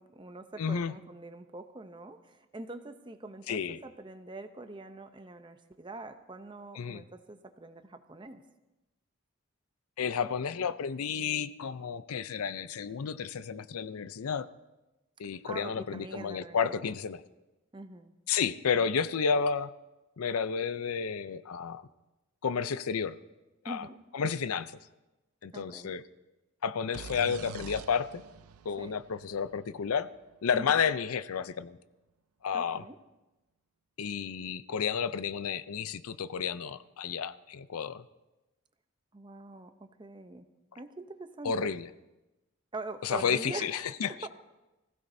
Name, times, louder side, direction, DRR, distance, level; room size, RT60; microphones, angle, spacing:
voice 1, 0.0-8.4 15.4-16.9 17.7-18.1 18.7-19.2 23.6-24.0 25.5-25.9 28.8-28.9 30.5-30.8 32.5-33.0 39.1-40.5 40.8-41.7 42.7-43.7 44.0-44.3, right 2 dB, 20° right, 9 dB, 0.6 m, -44 dB
voice 2, 0.6-0.9 3.5-3.8 6.8-7.0 10.0-14.5 15.2-17.2 18.3-19.7 20.2-21.9 22.4-23.2 23.6-23.9 24.1-24.7 25.4-26.0 26.6-28.2 28.6-30.1 30.4-31.8 32.4-32.8 34.0-38.0 41.4-41.9 43.0-44.1, left 6 dB, 80° left, 14 dB, 0.5 m, -31 dB
sound 1, 26.9-30.6, right 6 dB, 80° right, 0.5 m, -46 dB
25.0 x 15.5 x 2.7 m, 1.0 s
head